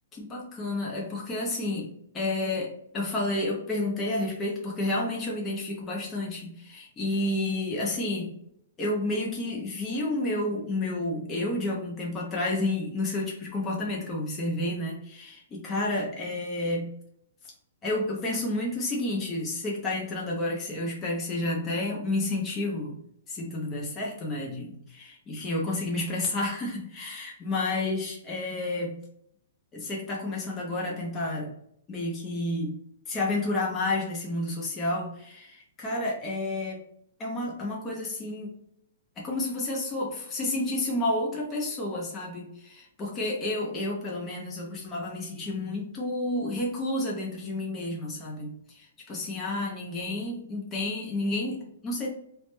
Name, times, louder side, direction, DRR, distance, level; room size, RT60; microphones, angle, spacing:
voice 1, 0.1-8.3 8.8-16.9 17.8-23.0 23.3-29.0 29.7-31.5 31.9-32.7 33.1-36.8 37.2-38.5 39.2-52.1, left 2 dB, 15° left, -3 dB, 0.4 m, -30 dB
2.1 x 2.0 x 2.9 m, 0.70 s
hypercardioid pair, 170°, 0 cm